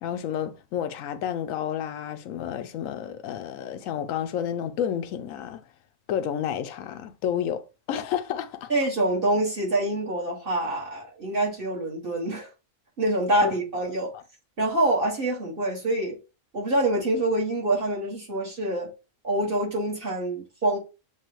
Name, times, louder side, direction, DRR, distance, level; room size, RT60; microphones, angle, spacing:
voice 1, 0.0-5.6 6.1-8.7 13.4-13.5, left 9 dB, 85° left, 1.0 m, -30 dB
voice 2, 8.7-12.5 13.0-14.1 14.6-16.2 16.5-18.9 19.2-20.8, right 1 dB, 45° right, 1.9 m, -26 dB
7.2 x 2.4 x 3.0 m
omnidirectional pair, 1.4 m